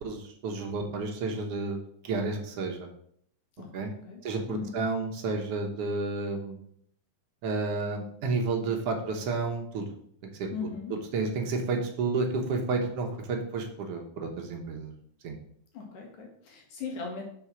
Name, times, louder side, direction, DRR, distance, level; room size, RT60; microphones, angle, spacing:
voice 1, 0.0-1.8 2.0-2.9 3.7-3.9 4.2-6.6 7.4-9.9 10.4-10.5 11.1-14.9 15.2-15.3, right 3 dB, 65° right, 2 dB, 1.7 m, -31 dB
voice 2, 3.6-4.8 10.5-11.0 15.7-17.2, left 5 dB, 80° left, -1 dB, 3.2 m, -39 dB
7.0 x 4.0 x 6.0 m, 0.66 s
omnidirectional pair, 3.5 m